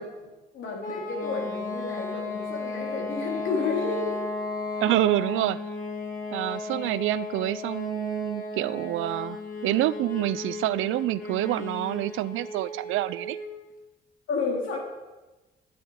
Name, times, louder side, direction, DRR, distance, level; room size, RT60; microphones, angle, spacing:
voice 1, 0.0-4.3 6.6-6.9 14.3-14.8, left 4 dB, 75° left, -1 dB, 3.8 m, -31 dB
sound 1, 0.8-13.6, left 3 dB, 45° left, 2.5 m, -35 dB
voice 2, 4.8-5.6 6.3-13.4, right 15 dB, 85° right, 18 dB, 0.5 m, -27 dB
13.5 x 11.0 x 4.9 m, 1.1 s
cardioid pair, 90°, 20 cm